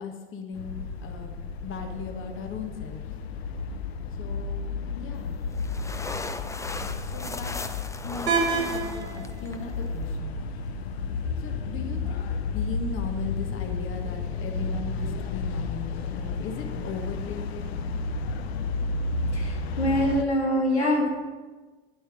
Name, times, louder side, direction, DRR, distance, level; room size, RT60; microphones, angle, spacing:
voice 1, 0.0-3.0 4.2-5.3 6.6-7.6 8.0-10.4 11.4-17.7, left 4 dB, 40° left, 4 dB, 1.3 m, -38 dB
sound 1, 0.5-20.2, left 4 dB, 75° left, 0.7 m, -32 dB
sound 2, 5.1-10.2, left 3 dB, 10° left, 0.6 m, -38 dB
sound 3, 8.3-14.3, right 5 dB, 80° right, 2.1 m, -34 dB
voice 2, 19.3-21.2, equal, 90° left, -2 dB, 1.9 m, -24 dB
9.7 x 7.9 x 5.9 m, 1.4 s
figure-of-eight pair, 65°, 32 cm